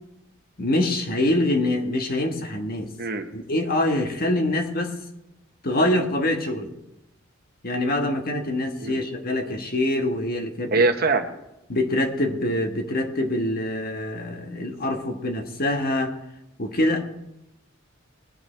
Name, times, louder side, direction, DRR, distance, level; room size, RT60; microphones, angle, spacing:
voice 1, 0.6-2.9 3.3-5.0 5.6-6.7 7.6-10.7 11.7-16.2 16.6-17.0, left 1 dB, 50° left, 4 dB, 1.4 m, -25 dB
voice 2, 10.7-11.3, right 3 dB, 50° right, 7 dB, 1.0 m, -22 dB
20.5 x 9.5 x 3.4 m, 0.87 s
head